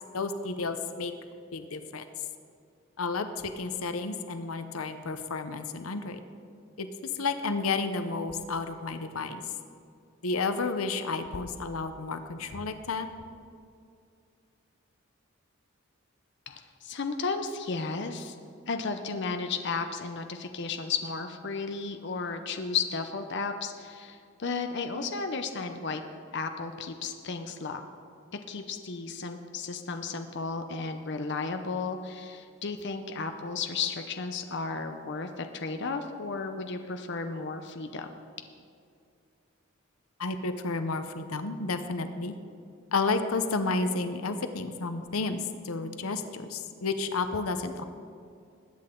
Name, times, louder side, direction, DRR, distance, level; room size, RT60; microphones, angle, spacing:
voice 1, 0.1-1.1 1.5-2.0 3.0-6.2 6.8-6.9 7.1-9.4 10.2-13.1 40.2-42.3 42.9-47.8, left 3 dB, 85° left, 9 dB, 0.8 m, -31 dB
voice 2, 16.5-18.4 18.7-26.0 26.3-27.8 28.5-38.1, left 4 dB, 55° left, 6 dB, 0.7 m, -34 dB
20.5 x 8.8 x 3.8 m, 2.4 s
head